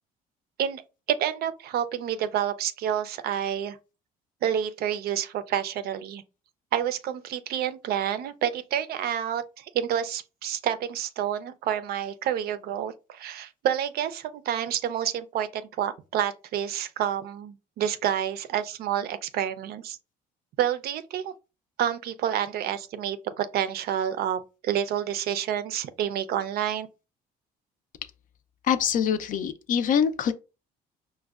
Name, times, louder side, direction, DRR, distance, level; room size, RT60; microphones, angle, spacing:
voice 1, 1.1-3.8 4.4-6.2 6.7-20.0 20.6-21.3 21.8-26.9, right 10 dB, 65° right, 0.4 m, -29 dB
voice 2, 28.6-30.3, left 8 dB, 55° left, 0.4 m, -24 dB
5.0 x 2.1 x 2.3 m
cardioid pair, 110°, 17 cm